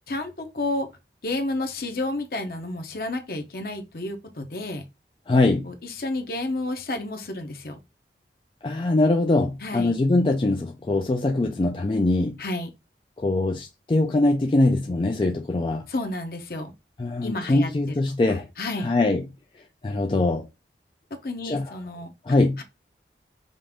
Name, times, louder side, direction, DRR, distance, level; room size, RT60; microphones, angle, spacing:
voice 1, 0.1-0.9 1.2-4.8 5.6-7.8 9.6-9.9 12.4-12.7 15.9-16.7 17.2-17.9 18.3-18.9 21.2-22.1 22.6-22.7, left 2 dB, 55° left, 0.9 m, -31 dB
voice 2, 5.3-5.7 8.6-12.4 13.2-15.8 17.0-18.5 18.8-19.2 19.8-20.5 21.4-21.7 22.3-22.6, left 2 dB, 30° left, 0.3 m, -22 dB
5.3 x 2.6 x 3.6 m
head